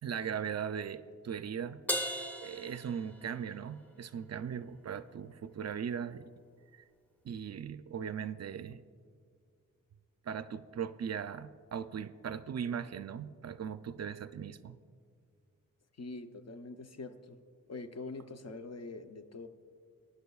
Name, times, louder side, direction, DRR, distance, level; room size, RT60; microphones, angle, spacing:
voice 1, 0.0-1.8 2.4-6.3 6.7-6.9 7.2-8.8 10.2-14.8, right 7 dB, 50° right, 12 dB, 0.4 m, -39 dB
Crash cymbal, 1.9-3.6, equal, 5° left, 1.0 m, -37 dB
voice 2, 16.0-17.4 17.7-19.5, left 3 dB, 50° left, 8 dB, 0.7 m, -44 dB
18.5 x 11.0 x 2.3 m, 2.2 s
cardioid pair, 80°, 34 cm